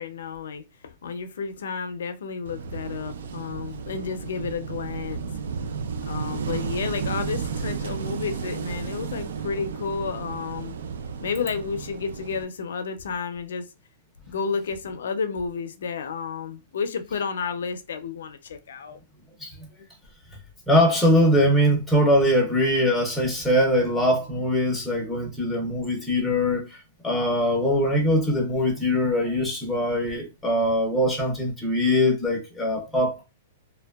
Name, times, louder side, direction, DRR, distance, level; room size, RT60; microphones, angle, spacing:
voice 1, 0.0-5.2 6.1-10.8 11.2-13.7 14.3-19.0, left 5 dB, 85° left, 0.4 m, -31 dB
Wind / Waves surf, 2.4-12.4, right 6 dB, 75° right, 0.3 m, -33 dB
voice 2, 20.7-33.2, equal, 5° left, 0.5 m, -22 dB
2.6 x 2.1 x 2.2 m
supercardioid pair, 180°, 0 cm